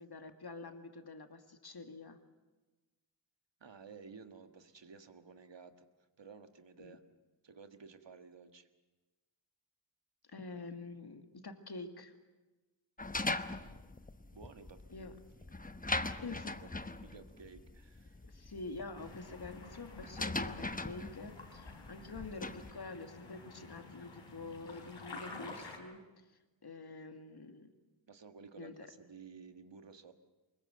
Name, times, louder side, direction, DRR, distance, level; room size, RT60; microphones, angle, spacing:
voice 1, 0.0-2.2 6.8-7.0 10.3-12.1 14.9-15.1 16.2-16.5 18.3-26.3 26.6-27.7 28.6-28.9, left 3 dB, 60° left, 7 dB, 2.2 m, -47 dB
voice 2, 3.6-5.9 6.2-7.0 7.4-8.7 14.3-15.1 16.6-18.2 28.1-30.1, right 5 dB, 75° right, 8 dB, 1.7 m, -54 dB
sound 1, 13.0-22.7, left 2 dB, 20° left, 1.0 m, -40 dB
sound 2, 19.0-25.8, left 3 dB, 90° left, 3.9 m, -51 dB
24.0 x 22.0 x 7.9 m, 1.2 s
wide cardioid pair, 65°, 44 cm